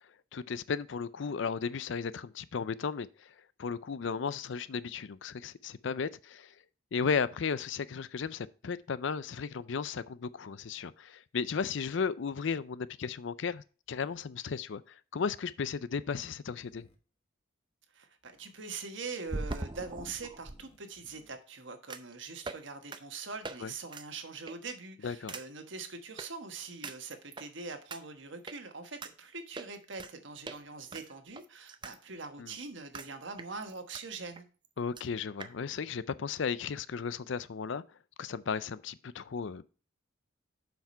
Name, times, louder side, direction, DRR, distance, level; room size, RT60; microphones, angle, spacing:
voice 1, 0.3-3.3 3.6-6.5 6.9-16.9 23.6-23.7 25.0-25.3 32.4-32.5 34.8-37.8 38.2-39.6, left 5 dB, 65° left, 0.4 m, -35 dB
sound 1, 13.8-14.2 16.0-17.0 18.2-18.6 20.4-21.3, left 1 dB, 25° left, 1.3 m, -64 dB
sound 2, 16.8-16.9 19.3-20.6 21.9-22.1 22.4-22.6 22.9-23.0 23.4-23.6 23.9-24.1 24.5-24.7 25.3-25.4 26.2-26.3 26.8-27.5 27.9-28.0 28.5-28.6 29.0-29.1 29.6-30.1 30.4-30.6 30.9-32.0 32.2-32.3 32.9-33.1 33.4-34.0 34.4-34.5 34.6-34.7 35.0-35.1 35.4-35.5, right 3 dB, 25° right, 0.5 m, -41 dB
voice 2, 17.9-34.5, right 4 dB, 65° right, 1.3 m, -43 dB
7.2 x 5.9 x 4.3 m
head